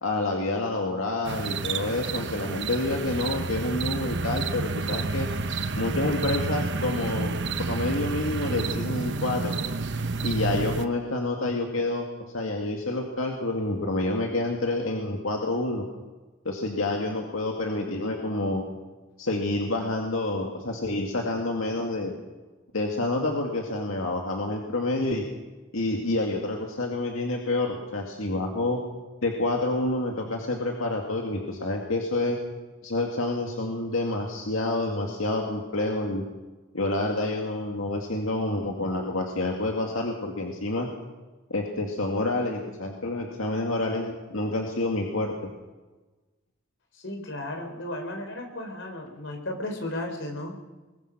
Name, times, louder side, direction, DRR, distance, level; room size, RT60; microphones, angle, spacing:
voice 1, 0.0-5.3 5.8-7.3 7.7-9.6 10.2-12.1 12.3-15.8 16.5-18.6 19.2-22.1 22.7-25.2 25.7-28.8 29.2-32.4 32.8-36.2 36.7-40.9 41.5-45.3, left 2 dB, 90° left, 1 dB, 2.2 m, -28 dB
sound 1, 1.2-10.9, right 3 dB, 60° right, 1.0 m, -30 dB
voice 2, 46.9-50.5, left 1 dB, 70° left, 4 dB, 3.8 m, -34 dB
22.5 x 19.5 x 6.2 m, 1.2 s
head